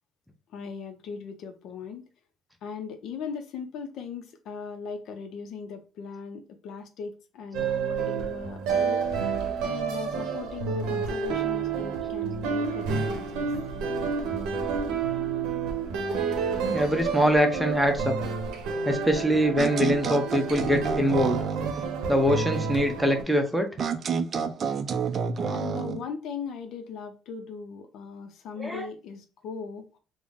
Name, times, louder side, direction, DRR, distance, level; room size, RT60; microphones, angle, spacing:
voice 1, 0.5-2.0 2.6-9.4 9.6-13.5 25.4-30.0, left 6 dB, 65° left, 0.5 m, -38 dB
sound 1, 7.5-23.2, right 5 dB, 85° right, 0.8 m, -29 dB
voice 2, 16.7-18.1 18.8-21.4 22.1-23.7 28.6-28.9, equal, ahead, 0.6 m, -23 dB
sound 2, 19.6-21.8 23.8-26.0, right 6 dB, 40° right, 0.3 m, -29 dB
3.8 x 2.0 x 3.5 m
cardioid pair, 120°, 0 cm